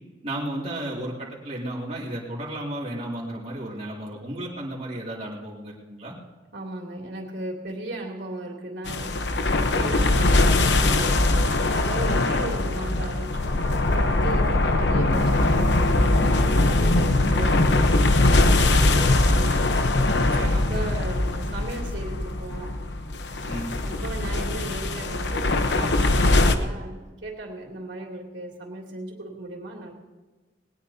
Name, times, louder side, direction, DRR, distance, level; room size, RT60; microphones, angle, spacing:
voice 1, 0.2-6.1 20.3-20.7 23.5-23.7, right 1 dB, 35° right, -5 dB, 2.6 m, -33 dB
voice 2, 6.5-19.8 20.1-22.8 23.8-29.9, right 2 dB, 75° right, -2 dB, 3.0 m, -37 dB
sound 1, 8.9-26.6, left 2 dB, 65° left, 1.0 m, -21 dB
20.0 x 19.0 x 2.8 m, 1.3 s
head